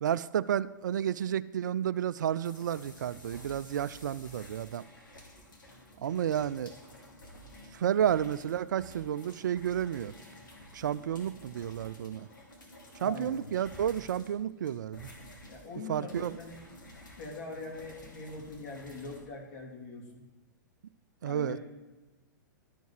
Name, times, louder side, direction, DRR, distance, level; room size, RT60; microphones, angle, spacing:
voice 1, 0.0-4.8 6.0-6.7 7.7-10.1 10.7-12.3 13.0-15.1 15.9-16.3 21.2-21.6, right 9 dB, 65° right, 16 dB, 0.4 m, -31 dB
sound 1, 2.4-19.2, left 1 dB, 75° left, 2.8 m, -52 dB
voice 2, 13.0-13.3 15.5-16.8 17.2-20.2 21.2-21.6, left 3 dB, 50° left, 0 dB, 2.9 m, -42 dB
12.5 x 5.4 x 6.1 m, 1.2 s
figure-of-eight pair, 110°, 11 cm